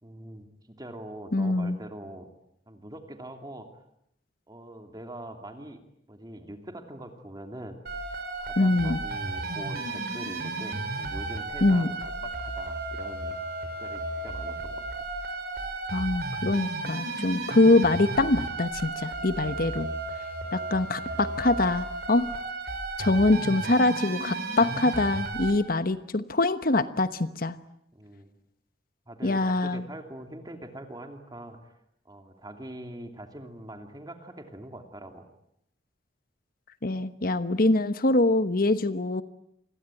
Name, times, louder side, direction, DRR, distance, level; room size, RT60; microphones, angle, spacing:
voice 1, 0.0-2.3 2.7-3.7 4.5-5.8 6.1-7.8 8.4-14.9 23.5-23.6 27.9-28.3 29.1-31.8 32.0-35.3, right 1 dB, 20° right, 5 dB, 2.8 m, -43 dB
voice 2, 1.3-1.8 8.6-9.0 11.6-11.9 15.9-19.9 20.5-22.3 23.0-27.5 29.2-29.8 36.8-39.2, left 2 dB, 55° left, 12 dB, 1.1 m, -24 dB
sound 1, 7.9-25.5, right 2 dB, 60° right, 5.2 m, -34 dB
29.0 x 22.0 x 9.1 m, 0.76 s
head